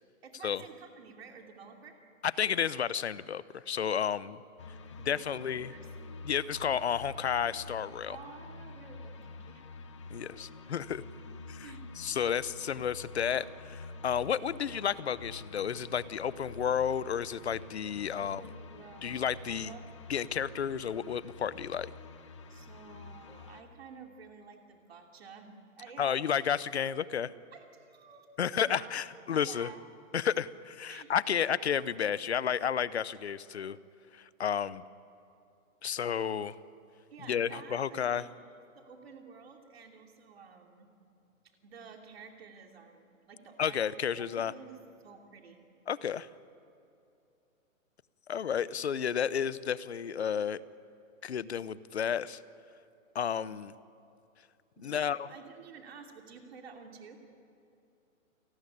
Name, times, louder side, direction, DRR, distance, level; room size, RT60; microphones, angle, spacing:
voice 1, 0.2-2.0 4.9-5.9 8.1-9.7 10.3-10.7 11.6-11.9 18.2-19.9 22.5-26.3 27.5-29.8 30.9-31.1 37.1-40.9 41.6-45.6 54.8-57.2, right 5 dB, 45° right, 3 dB, 2.8 m, -51 dB
voice 2, 2.2-4.4 5.1-5.7 6.2-8.2 10.1-11.0 11.5-11.7 12.0-18.4 19.0-19.7 20.1-21.9 26.0-27.3 28.4-29.7 30.1-33.8 34.1-34.8 35.8-36.6 37.3-38.2 43.6-44.5 45.9-46.3 48.3-50.6 51.2-52.4 53.1-53.7 54.8-55.3, left 8 dB, 50° left, 18 dB, 0.8 m, -32 dB
sound 1, 4.6-23.6, left 3 dB, 20° left, 1.0 m, -48 dB
29.0 x 19.0 x 9.9 m, 2.6 s
hypercardioid pair, 175°, 42 cm